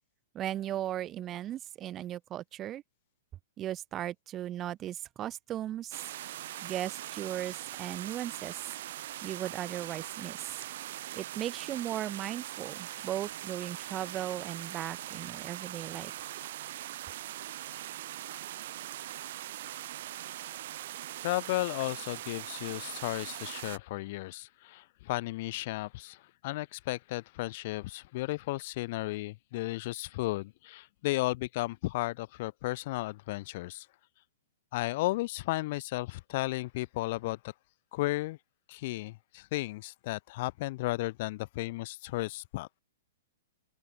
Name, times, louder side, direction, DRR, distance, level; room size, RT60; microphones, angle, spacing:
voice 1, 0.3-2.8 3.6-6.0 6.6-8.7 9.2-10.6 11.1-16.1, right 12 dB, 25° right, 1.3 m, -37 dB
sound 1, 5.9-23.8, right 14 dB, 60° right, 0.6 m, -41 dB
voice 2, 21.2-33.9 34.7-37.5 37.9-38.4 38.7-42.8, left 19 dB, 50° left, 0.7 m, -34 dB
open air
hypercardioid pair, 135°, 0 cm